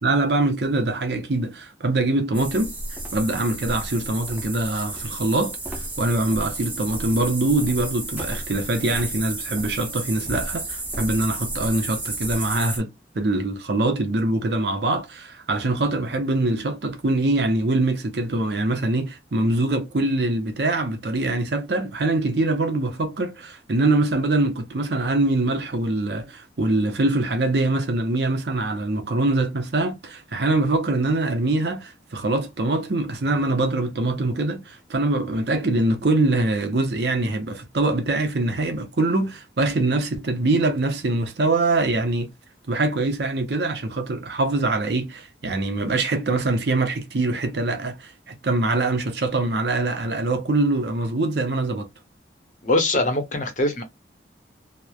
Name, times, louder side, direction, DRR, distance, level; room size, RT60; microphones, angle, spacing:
voice 1, 0.0-2.8 3.1-5.6 6.0-12.9 13.1-42.3 42.7-51.9, right 2 dB, 70° right, 0.7 m, -23 dB
sound 1, 2.3-12.8, right 2 dB, 10° right, 0.7 m, -32 dB
voice 2, 52.6-53.8, left 2 dB, 45° left, 0.7 m, -22 dB
3.0 x 2.0 x 2.3 m
head